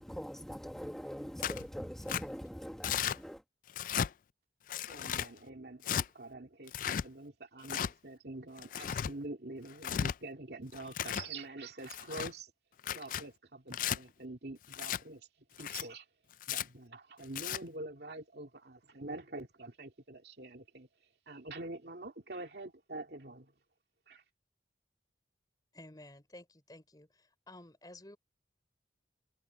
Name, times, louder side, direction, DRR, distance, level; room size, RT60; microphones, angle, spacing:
voice 1, 0.0-3.4, equal, 5° left, 1.2 m, -43 dB
Tearing, 1.4-1.6 2.1-2.2 2.8-3.2 3.7-4.1 4.7-5.3 5.8-6.1 6.7-7.0 7.6-7.9 8.6-9.1 9.7-10.1 10.7-11.3 11.8-12.3 12.8-13.2 13.7-14.0 14.7-15.0 15.6-15.8 16.4-16.6 17.2-17.6, left 9 dB, 50° left, 0.3 m, -35 dB
voice 2, 4.9-12.5 12.9-15.3 15.6-16.1 16.5-20.9 21.3-23.5 24.1-24.2, right 2 dB, 65° right, 2.5 m, -46 dB
voice 3, 25.7-28.2, left 1 dB, 20° left, 4.1 m, -53 dB
head